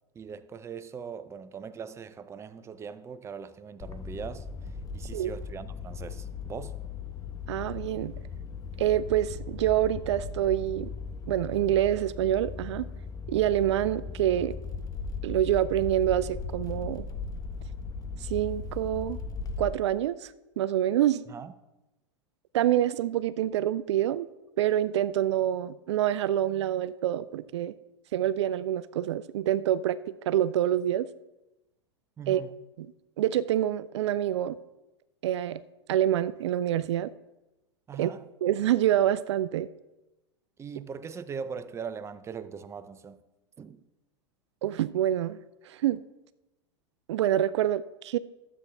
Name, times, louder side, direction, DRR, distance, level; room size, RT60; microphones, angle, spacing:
voice 1, 0.1-6.8 21.3-21.5 32.2-32.5 37.9-38.3 40.6-43.2 43.6-43.8, right 6 dB, 20° right, 0.5 m, -40 dB
sound 1, 3.8-19.7, left 4 dB, 25° left, 0.9 m, -38 dB
voice 2, 7.5-8.2 8.8-10.9 11.3-12.9 13.3-14.6 15.2-17.1 18.2-19.2 19.6-21.2 22.5-24.3 24.6-27.7 28.1-30.0 30.3-31.1 32.3-32.4 32.8-32.9 33.2-34.6 35.2-35.6 35.9-37.1 38.0-38.1 38.4-39.7 44.6-45.4 45.7-46.0 47.1-48.2, right 12 dB, 75° right, 0.4 m, -26 dB
12.5 x 8.2 x 3.4 m
hypercardioid pair, 105°, 15 cm